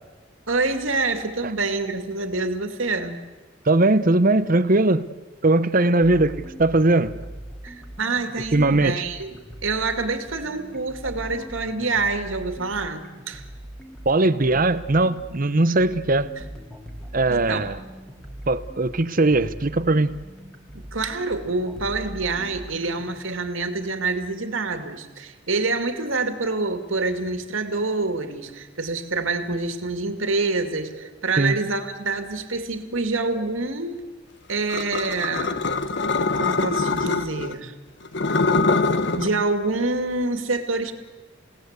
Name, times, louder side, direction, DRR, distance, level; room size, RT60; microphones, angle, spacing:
voice 1, 0.5-3.2 7.6-13.4 17.3-17.7 20.7-34.1 34.5-35.6 36.4-37.7 39.1-40.9, right 3 dB, 75° right, 7 dB, 2.4 m, -26 dB
voice 2, 3.6-5.1 5.4-7.1 8.5-9.0 14.1-16.3 17.1-17.8 18.5-20.1 31.4-31.6, right 2 dB, 40° right, 14 dB, 0.9 m, -19 dB
sound 1, 6.0-23.1, right 1 dB, 5° left, 2.7 m, -41 dB
sound 2, 34.7-37.5 38.1-39.3, left 3 dB, 55° left, 1.1 m, -23 dB
29.5 x 18.0 x 8.2 m, 1.3 s
head